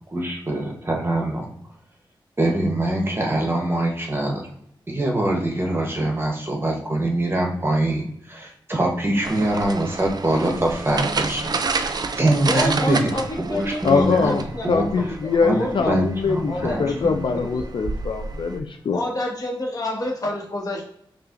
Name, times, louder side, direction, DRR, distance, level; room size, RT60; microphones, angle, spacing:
voice 1, 0.1-1.5 2.4-4.5 4.9-14.4 14.6-17.3, right 1 dB, 25° right, 0 dB, 0.9 m, -24 dB
sound 1, 9.2-18.6, right 4 dB, 50° right, 0.4 m, -30 dB
voice 2, 12.5-15.3 15.6-16.0 16.5-17.7 18.9-20.8, left 1 dB, 45° left, -1 dB, 1.3 m, -29 dB
voice 3, 13.8-14.4 14.7-19.0, left 4 dB, 70° left, 5 dB, 0.4 m, -22 dB
5.5 x 2.5 x 2.5 m, 0.71 s
wide cardioid pair, 90°, 9 cm